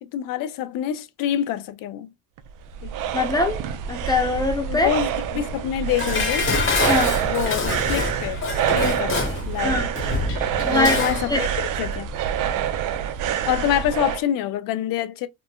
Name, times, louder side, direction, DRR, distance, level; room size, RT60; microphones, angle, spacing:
voice 1, 0.0-2.1 2.8-2.9 4.7-6.5 7.2-9.8 10.7-11.5 11.8-12.1 13.4-15.3, left 11 dB, 80° left, 0.5 m, -26 dB
sound 1, 2.4-14.2, right 9 dB, 70° right, 0.5 m, -26 dB
voice 2, 3.1-3.6 3.9-4.9 6.9-7.2 9.6-9.9 10.4-11.0 11.3-11.4, left 3 dB, 10° left, 0.8 m, -23 dB
Dishes pots and pans, 6.0-11.3 11.6-11.7, left 4 dB, 35° left, 0.9 m, -26 dB
3.1 x 2.1 x 2.3 m
cardioid pair, 90°, 33 cm